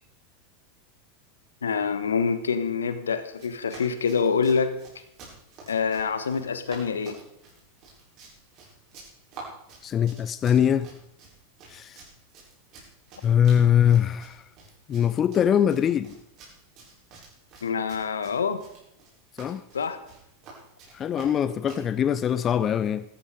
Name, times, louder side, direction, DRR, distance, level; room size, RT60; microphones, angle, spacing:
voice 1, 1.6-4.7 5.7-7.2 17.6-18.6 19.7-20.0, left 5 dB, 80° left, 1.3 m, -26 dB
Run, 3.3-21.9, right 4 dB, 45° right, 7.5 m, -49 dB
voice 2, 9.8-10.9 11.7-12.0 13.2-14.4 14.9-16.1 19.4-19.6 20.9-23.0, left 9 dB, 30° left, 0.6 m, -22 dB
14.5 x 14.0 x 5.1 m
figure-of-eight pair, 90°, 0 cm